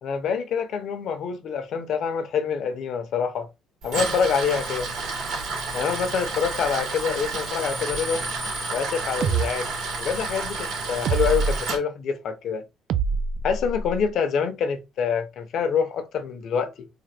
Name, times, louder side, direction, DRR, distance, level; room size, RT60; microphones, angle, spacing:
voice 1, 0.0-3.5 3.8-4.9 5.7-8.3 8.7-9.7 10.0-12.6 13.4-16.9, left 6 dB, 55° left, 0.6 m, -26 dB
Tools, 3.8-11.8, right 3 dB, 90° right, 2.2 m, -30 dB
sound 1, 9.2-9.5 11.0-11.6 12.9-14.0, right 6 dB, 55° right, 0.3 m, -24 dB
3.7 x 2.1 x 3.3 m
cardioid pair, 155°, 0 cm